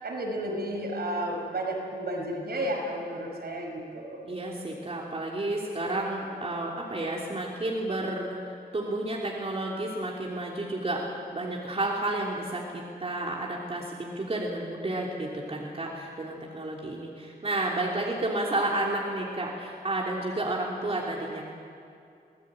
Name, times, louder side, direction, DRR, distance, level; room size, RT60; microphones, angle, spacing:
voice 1, 0.0-4.3, right 1 dB, 70° right, 0 dB, 5.7 m, -32 dB
voice 2, 4.3-21.4, right 2 dB, 35° right, -2 dB, 3.1 m, -31 dB
25.5 x 19.5 x 8.8 m, 2.5 s
wide cardioid pair, 130°, 17 cm